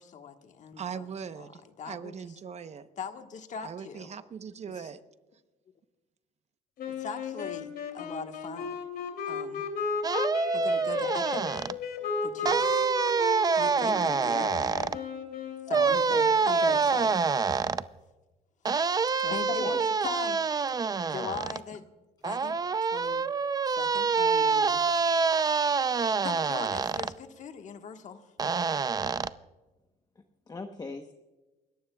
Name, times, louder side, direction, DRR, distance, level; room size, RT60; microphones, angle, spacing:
voice 1, 0.0-1.1 1.4-1.5 1.8-2.2 3.0-4.1 7.0-7.7 7.9-8.7 9.3-9.6 10.5-11.6 12.2-12.9 13.6-14.7 15.7-17.2 19.3-20.4 21.1-21.9 22.2-22.6 22.9-23.2 23.7-24.8 26.2-28.3, left 6 dB, 45° left, 6 dB, 1.4 m, -40 dB
voice 2, 0.8-2.9 3.6-5.0, right 7 dB, 40° right, 11 dB, 0.9 m, -40 dB
sound 1, 6.8-16.0, left 5 dB, 65° left, 2.9 m, -35 dB
sound 2, 10.0-11.7 12.5-15.0 15.7-17.8 18.7-21.6 22.2-27.1 28.4-29.3, right 5 dB, 20° right, 0.5 m, -26 dB
voice 3, 19.2-19.8 20.7-21.1 30.2-31.1, left 3 dB, 25° left, 5 dB, 1.0 m, -42 dB
29.0 x 14.0 x 2.3 m, 1.1 s
cardioid pair, 110°, 17 cm